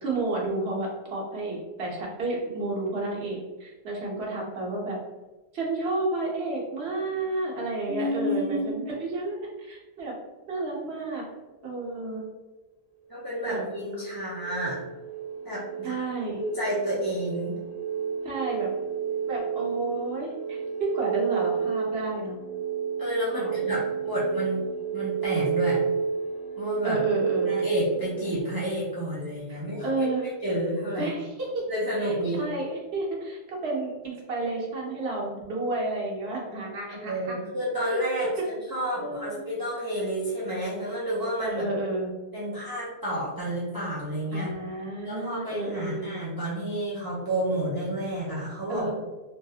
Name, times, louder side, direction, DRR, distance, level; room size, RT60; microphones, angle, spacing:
voice 1, 0.0-5.0 5.5-10.1 10.5-11.2 11.6-12.2 13.5-13.6 15.8-16.4 18.2-18.7 19.3-22.4 23.3-23.8 26.8-27.6 29.8-30.2 31.0-31.6 32.0-37.4 37.9-38.5 39.0-39.4 41.4-42.1 44.3-46.2 48.7-48.9, right 2 dB, 85° right, -3 dB, 1.1 m, -31 dB
voice 2, 7.9-8.8 13.1-14.8 15.4-16.0 16.3-17.6 23.0-24.7 24.9-25.8 26.6-27.0 27.4-31.1 31.7-32.4 37.1-41.7 42.3-44.5 45.0-48.9, equal, 25° right, -8 dB, 0.6 m, -30 dB
sound 1, 13.2-28.4, right 7 dB, 70° left, 0.9 m, -31 dB
3.2 x 2.4 x 2.7 m, 1.1 s
omnidirectional pair, 1.0 m